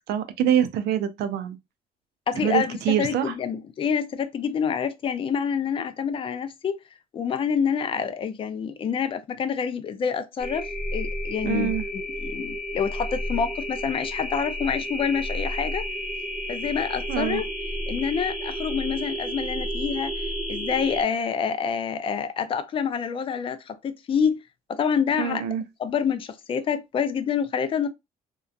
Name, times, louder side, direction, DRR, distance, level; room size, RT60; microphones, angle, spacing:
voice 1, 0.1-1.6 2.4-3.3 11.4-11.8 17.1-17.4 25.2-25.6, right 9 dB, 75° right, 0.5 m, -25 dB
voice 2, 2.3-6.8 7.1-15.8 16.5-17.5 17.9-20.1 20.5-24.4 24.7-25.4 25.8-27.9, left 7 dB, 30° left, 0.4 m, -27 dB
sound 1, 10.4-21.0, equal, ahead, 1.2 m, -31 dB
2.8 x 2.3 x 2.4 m
cardioid pair, 110°, 17 cm